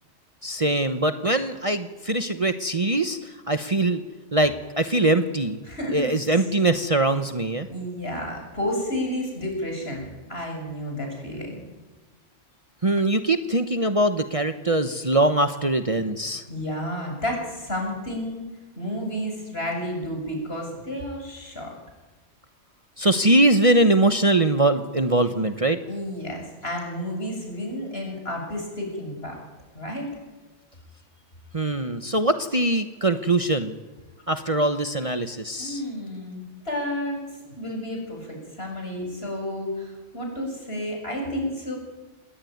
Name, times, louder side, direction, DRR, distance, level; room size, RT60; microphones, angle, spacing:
voice 1, 0.4-4.0 4.3-5.6 5.9-7.7 12.8-16.4 23.0-25.8 31.5-33.8 34.3-35.8, right 2 dB, 30° right, 8 dB, 1.1 m, -22 dB
voice 2, 5.7-6.4 7.7-11.6 16.5-18.4 18.8-21.7 25.9-29.4 29.7-30.1 35.6-41.8, left 1 dB, 55° left, 2 dB, 7.7 m, -31 dB
27.5 x 20.5 x 9.5 m, 1.2 s
omnidirectional pair, 1.2 m